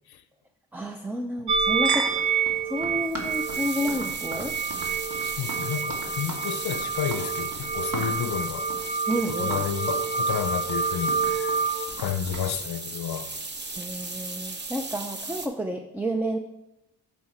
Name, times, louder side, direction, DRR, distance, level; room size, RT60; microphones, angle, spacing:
voice 1, 0.7-4.5 9.1-9.6 13.8-16.4, equal, 5° right, 0.4 m, -30 dB
sound 1, 1.5-11.9, right 5 dB, 85° right, 0.7 m, -28 dB
Run, 2.0-12.5, right 2 dB, 55° right, 2.4 m, -39 dB
sound 2, 3.0-15.5, right 3 dB, 25° right, 0.9 m, -37 dB
voice 2, 5.2-8.7 9.3-11.6 12.0-13.3, left 9 dB, 70° left, 0.6 m, -31 dB
12.0 x 5.7 x 4.3 m
wide cardioid pair, 120°, 39 cm